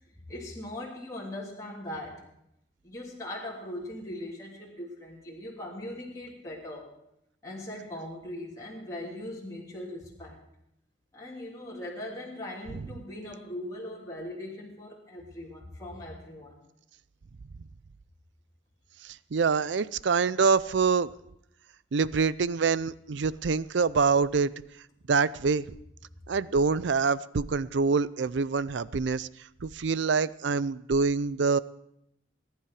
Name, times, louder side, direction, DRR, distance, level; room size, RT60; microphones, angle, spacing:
voice 1, 0.1-2.2 2.8-6.9 7.4-10.4 11.1-16.5, left 1 dB, 15° left, -5 dB, 3.1 m, -40 dB
voice 2, 19.0-21.1 21.9-24.5 25.1-25.7 26.3-29.3 29.6-31.6, right 5 dB, 65° right, 18 dB, 0.5 m, -25 dB
20.5 x 10.5 x 4.8 m, 0.78 s
head